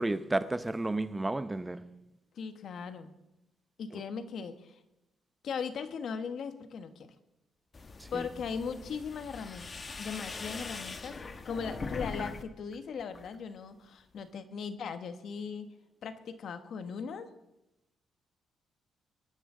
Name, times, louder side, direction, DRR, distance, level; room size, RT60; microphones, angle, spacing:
voice 1, 0.0-2.1 3.9-4.0 8.0-8.3, right 2 dB, 15° right, 0.7 m, -32 dB
voice 2, 2.3-3.1 3.8-4.8 5.4-7.1 8.1-11.2 11.4-15.7 16.0-17.3, left 6 dB, 65° left, 1.3 m, -38 dB
sound 1, 7.7-12.4 12.7-13.4, left 4 dB, 35° left, 1.3 m, -41 dB
22.0 x 10.0 x 3.8 m
cardioid pair, 90°, 0 cm